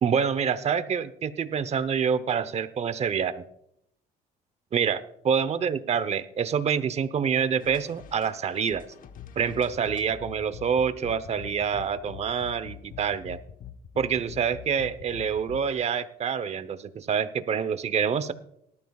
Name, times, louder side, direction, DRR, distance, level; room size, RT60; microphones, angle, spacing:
voice 1, 0.0-3.4 4.7-8.8 9.4-13.4 14.0-18.3, right 7 dB, 40° right, 14 dB, 0.9 m, -27 dB
sound 1, 7.6-15.6, left 9 dB, 55° left, 1.0 m, -44 dB
19.0 x 13.0 x 2.4 m, 0.74 s
cardioid pair, 110°, 17 cm